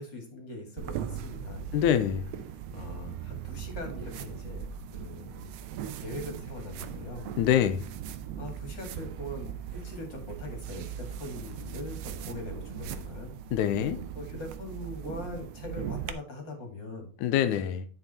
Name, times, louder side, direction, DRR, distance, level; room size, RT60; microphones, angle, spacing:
voice 1, 0.0-2.1 2.7-4.7 4.9-5.5 6.0-7.3 8.4-13.3 14.2-17.1, left 2 dB, 40° left, 2.4 m, -41 dB
sound 1, 0.8-16.1, right 8 dB, 85° right, 1.4 m, -39 dB
voice 2, 1.7-2.2 7.4-7.9 13.5-14.0 17.2-17.9, left 10 dB, 85° left, 2.1 m, -25 dB
9.8 x 5.3 x 4.3 m
omnidirectional pair, 3.5 m